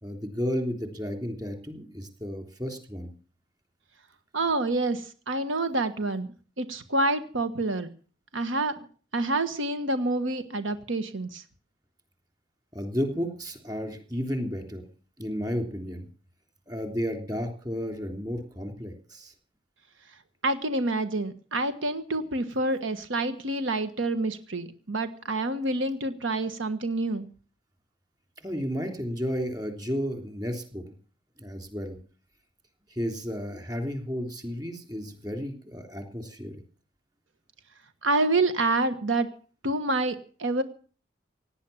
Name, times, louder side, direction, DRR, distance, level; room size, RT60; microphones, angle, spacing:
voice 1, 0.0-3.1 12.7-14.9 15.2-16.1 16.7-19.3 28.4-30.9 31.4-32.0 32.9-36.6, equal, 20° right, 4 dB, 3.3 m, -32 dB
voice 2, 4.3-6.3 6.6-7.9 8.3-8.7 9.1-11.4 20.4-27.3 38.0-39.3 39.6-40.6, right 2 dB, 80° right, 9 dB, 1.4 m, -27 dB
17.5 x 10.5 x 7.1 m, 0.42 s
head